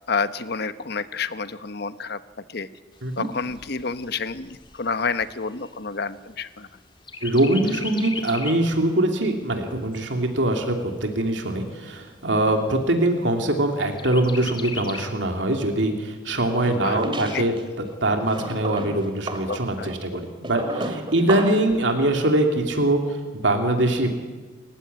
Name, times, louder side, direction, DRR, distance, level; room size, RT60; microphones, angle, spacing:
voice 1, 0.1-2.2 2.5-2.7 3.2-6.7 16.8-17.5 19.5-19.9, left 4 dB, 60° left, 12 dB, 1.1 m, -29 dB
Chirp tweet, 2.9-6.7 7.1-8.7 9.2-9.3 9.6-10.6 11.2-11.3 11.7-11.8 12.2-12.7 14.0-15.1, left 4 dB, 25° left, 2.1 m, -37 dB
voice 2, 7.2-17.5 18.0-24.1, right 1 dB, 75° right, 3 dB, 3.0 m, -23 dB
sound 1, 16.6-17.6 18.3-21.7, right 1 dB, 25° right, 2.2 m, -32 dB
28.5 x 15.5 x 9.9 m, 1.4 s
head